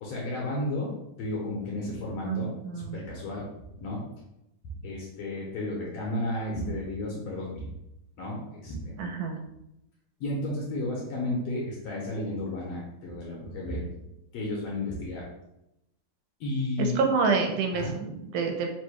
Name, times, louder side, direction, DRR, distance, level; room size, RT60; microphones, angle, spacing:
voice 1, 0.0-2.5 2.8-4.1 4.8-7.7 8.2-8.9 10.2-15.3 16.4-17.0 17.7-17.9, left 1 dB, 65° left, -4 dB, 1.8 m, -33 dB
voice 2, 2.3-3.0 9.0-9.4 16.8-18.7, right 4 dB, 85° right, 3 dB, 2.2 m, -28 dB
4.9 x 2.2 x 4.6 m, 0.86 s
omnidirectional pair, 3.6 m